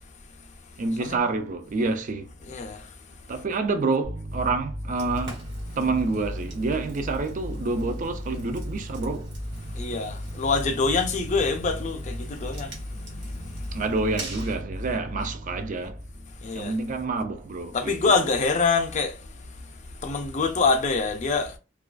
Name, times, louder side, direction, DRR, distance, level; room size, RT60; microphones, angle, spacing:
voice 1, 0.8-2.3 3.3-5.4 5.8-9.3 13.7-16.0 16.5-18.1, right 3 dB, 40° right, 0.4 m, -28 dB
voice 2, 2.4-2.9 9.8-13.8 16.4-16.8 17.7-19.2 20.0-21.6, left 4 dB, 40° left, 0.4 m, -26 dB
sound 1, 4.0-17.2, equal, 85° right, 0.7 m, -36 dB
Fire, 5.0-14.6, right 1 dB, 60° right, 1.1 m, -43 dB
2.3 x 2.3 x 2.3 m
head